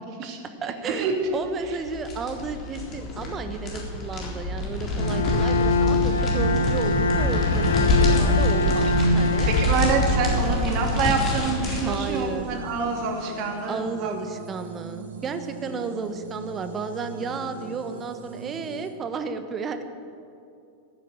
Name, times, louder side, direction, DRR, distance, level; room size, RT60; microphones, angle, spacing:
voice 1, 0.1-1.1 1.7-1.8 9.0-9.1 9.4-14.1 15.6-15.8, right 5 dB, 40° right, 2 dB, 2.8 m, -27 dB
voice 2, 0.6-9.5 11.8-12.5 13.7-19.8, right 5 dB, 25° right, 9 dB, 1.3 m, -33 dB
sound 1, 1.6-12.3, left 2 dB, 30° left, 3.9 m, -25 dB
Bowed string instrument, 5.0-10.9, left 2 dB, 70° left, 0.9 m, -24 dB
sound 2, 9.4-18.9, right 5 dB, 65° right, 2.3 m, -41 dB
14.5 x 10.0 x 8.9 m, 2.6 s
figure-of-eight pair, 90°, 0 cm